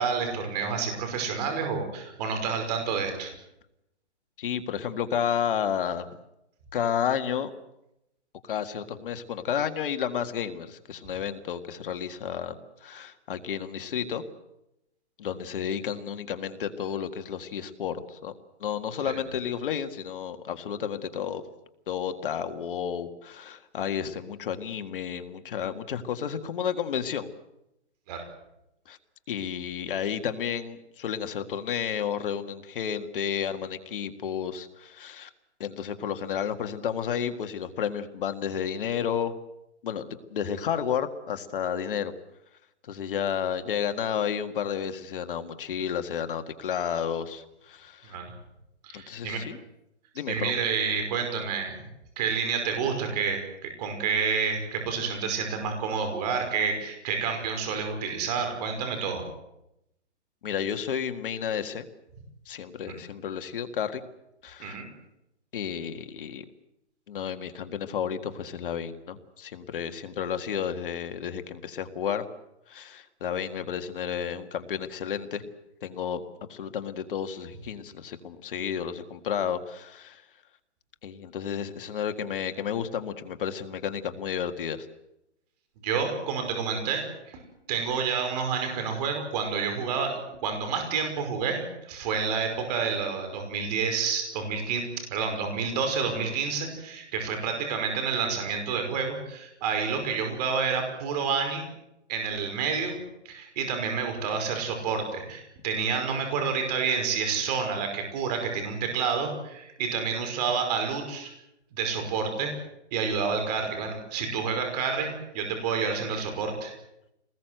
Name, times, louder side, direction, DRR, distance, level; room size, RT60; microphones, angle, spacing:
voice 1, 0.0-3.3 19.1-19.2 28.1-28.3 48.0-48.3 48.8-49.4 50.3-51.8 52.2-59.3 62.9-63.0 64.6-64.9 85.8-87.4 87.7-94.8 95.1-101.7 102.1-103.0 103.3-111.3 111.7-112.5 112.9-116.7, right 5 dB, 35° right, 5 dB, 5.5 m, -29 dB
voice 2, 4.4-6.1 6.7-7.5 8.5-12.5 12.8-14.2 15.2-18.3 18.6-21.4 21.9-27.3 28.9-29.0 29.3-35.3 35.6-39.3 39.8-40.0 40.3-42.1 42.9-48.2 48.9-49.6 50.2-50.6 60.4-61.9 62.5-64.0 64.4-64.8 65.5-66.5 67.1-72.2 72.7-75.4 75.8-76.2 76.5-80.2 81.0-84.9, left 8 dB, 50° left, 9 dB, 1.8 m, -31 dB
25.0 x 20.0 x 7.9 m, 0.85 s
hypercardioid pair, 155°, 34 cm